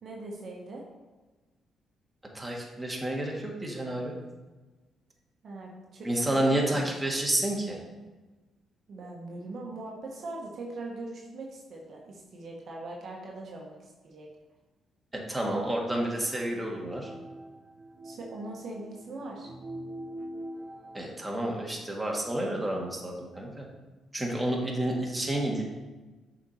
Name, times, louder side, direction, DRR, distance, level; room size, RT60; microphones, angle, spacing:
voice 1, 0.0-0.8 5.4-6.9 8.9-14.3 18.0-19.5, right 2 dB, 60° right, -1 dB, 1.2 m, -41 dB
voice 2, 2.3-4.2 6.0-7.8 15.3-17.1 20.9-23.7 24.1-25.6, right 1 dB, 10° right, -1 dB, 1.7 m, -30 dB
sound 1, 15.8-21.1, right 1 dB, 30° right, 0.5 m, -44 dB
6.8 x 4.4 x 4.3 m, 1.2 s
supercardioid pair, 60°, 0 cm